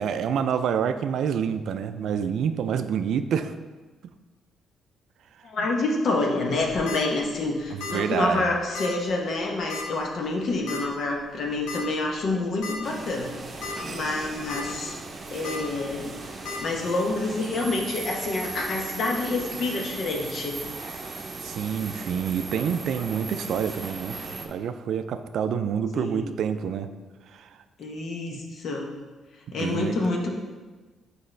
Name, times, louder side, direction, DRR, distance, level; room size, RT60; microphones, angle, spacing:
voice 1, 0.0-3.5 7.9-8.5 21.0-26.9 27.3-27.6 28.3-28.4 29.6-30.0, right 7 dB, 70° right, 10 dB, 0.3 m, -27 dB
voice 2, 5.4-13.3 13.6-15.0 15.3-20.6 25.9-26.3 27.8-28.9 29.5-30.3, left 2 dB, 60° left, 0 dB, 0.9 m, -28 dB
sound 1, 6.5-7.0 7.8-8.1 8.3-8.4 8.7-8.9 9.7-10.0 10.7-10.8 11.7-11.8 12.3-12.4 12.6-12.7 13.4-13.7 14.2-14.6 15.4-15.6 16.4-16.6, left 4 dB, 90° left, 1.2 m, -34 dB
sound 2, 12.8-24.5, right 3 dB, 40° right, 0.7 m, -37 dB
6.5 x 4.7 x 3.3 m, 1.3 s
cardioid pair, 90°, 0 cm